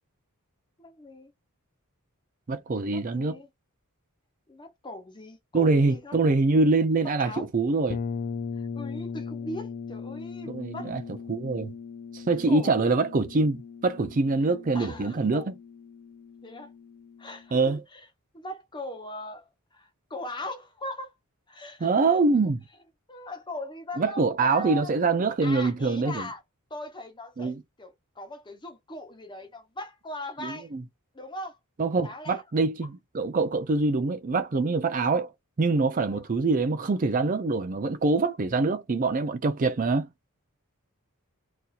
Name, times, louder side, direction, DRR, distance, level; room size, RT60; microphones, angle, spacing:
voice 1, 0.8-1.3 2.9-3.5 4.5-6.3 7.0-7.5 8.6-10.9 12.5-12.9 14.7-15.5 16.4-16.7 17.2-18.1 18.3-21.1 21.5-22.0 23.1-25.0 25.4-26.4 26.7-30.7 31.1-31.6 32.0-32.4 36.1-36.2, left 1 dB, 20° left, 0.9 m, -40 dB
voice 2, 2.5-3.4 5.5-8.0 10.5-11.0 11.3-11.7 12.1-15.5 17.5-17.8 21.8-22.6 24.0-26.3 27.4-27.6 30.4-30.8 31.8-35.3 35.6-40.1, right 3 dB, 35° right, 0.4 m, -24 dB
sound 1, 7.9-17.6, left 5 dB, 35° left, 0.3 m, -39 dB
4.0 x 2.7 x 2.4 m
head